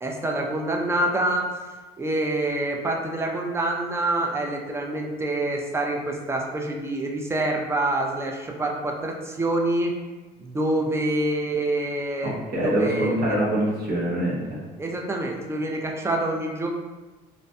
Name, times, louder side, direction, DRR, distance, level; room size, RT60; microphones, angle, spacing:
voice 1, 0.0-1.5 2.0-9.9 10.4-12.4 12.6-13.3 14.8-16.7, right 1 dB, 15° right, 1 dB, 0.3 m, -26 dB
voice 2, 12.2-14.6, right 1 dB, 65° right, -5 dB, 0.9 m, -24 dB
2.5 x 2.1 x 2.6 m, 1.2 s
cardioid pair, 110°, 17 cm